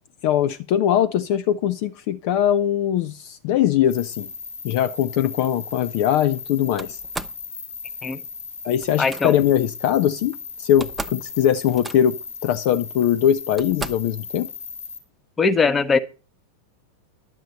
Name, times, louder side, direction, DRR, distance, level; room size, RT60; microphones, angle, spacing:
voice 1, 0.2-4.3 4.6-7.0 8.6-14.5, left 10 dB, 45° left, 0.6 m, -21 dB
sound 1, 3.9-15.0, left 5 dB, 70° left, 2.2 m, -37 dB
Slam, 6.8-7.4 8.8-9.2 10.3-10.4 10.7-11.3 11.5-12.3 13.0-13.1 13.6-14.2, right 3 dB, 10° right, 0.6 m, -35 dB
voice 2, 9.0-9.4 15.4-16.0, left 4 dB, 15° left, 1.0 m, -20 dB
11.5 x 9.1 x 4.1 m
figure-of-eight pair, 90°, 0 cm